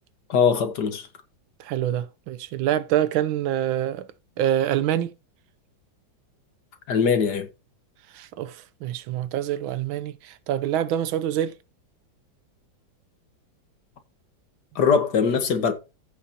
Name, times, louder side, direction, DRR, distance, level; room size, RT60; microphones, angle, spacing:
voice 1, 0.3-1.1 6.9-7.5 14.7-15.7, left 6 dB, 60° left, 1.7 m, -21 dB
voice 2, 1.6-4.1 4.4-5.1 8.1-11.5, right 11 dB, 85° right, 1.5 m, -26 dB
15.0 x 6.0 x 2.8 m
omnidirectional pair, 2.2 m